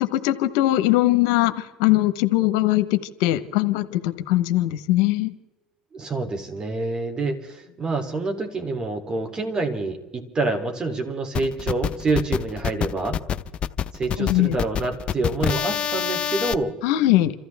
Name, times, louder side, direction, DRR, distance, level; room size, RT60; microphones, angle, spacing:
voice 1, 0.0-5.3 14.2-14.6 16.8-17.3, left 16 dB, 85° left, 11 dB, 0.9 m, -21 dB
voice 2, 5.9-13.2 13.9-16.8, right 3 dB, 30° right, 5 dB, 3.1 m, -27 dB
sound 1, 11.3-16.5, left 9 dB, 45° left, 0.7 m, -26 dB
28.0 x 14.5 x 3.5 m, 1.1 s
supercardioid pair, 90°, 3 cm